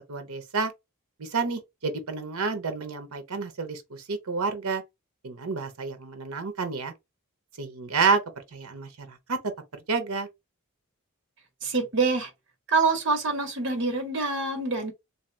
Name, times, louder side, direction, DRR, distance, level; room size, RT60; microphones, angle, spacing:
voice 1, 0.1-0.7 1.2-4.8 5.2-6.9 7.6-8.2 8.5-9.4 9.7-10.3, right 4 dB, 85° right, 0.8 m, -29 dB
voice 2, 11.6-12.3 12.7-14.9, right 4 dB, 55° right, 1.4 m, -25 dB
3.4 x 2.8 x 3.3 m
head